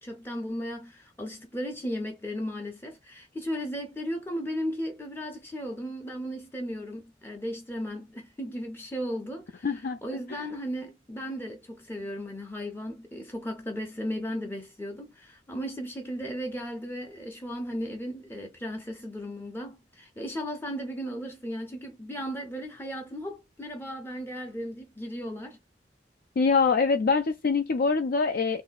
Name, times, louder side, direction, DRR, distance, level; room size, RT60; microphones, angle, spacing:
voice 1, 0.0-25.6, equal, 10° left, 0.6 m, -36 dB
voice 2, 9.6-10.0 10.3-10.4 26.4-28.6, left 4 dB, 55° left, 0.4 m, -24 dB
3.0 x 2.6 x 3.9 m
head